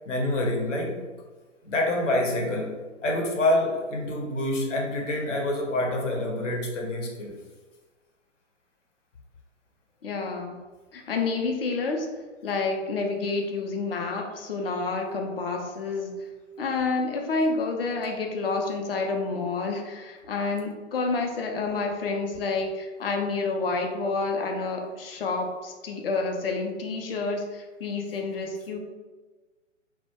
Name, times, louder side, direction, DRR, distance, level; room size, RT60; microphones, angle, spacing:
voice 1, 0.1-1.1 1.6-2.7 3.0-7.4, left 1 dB, 70° left, 0 dB, 0.8 m, -27 dB
voice 2, 10.0-10.6 10.9-12.1 12.4-16.2 16.6-28.8, left 3 dB, 50° left, 3 dB, 0.4 m, -29 dB
2.2 x 2.1 x 2.7 m, 1.3 s
figure-of-eight pair, 135°, 38 cm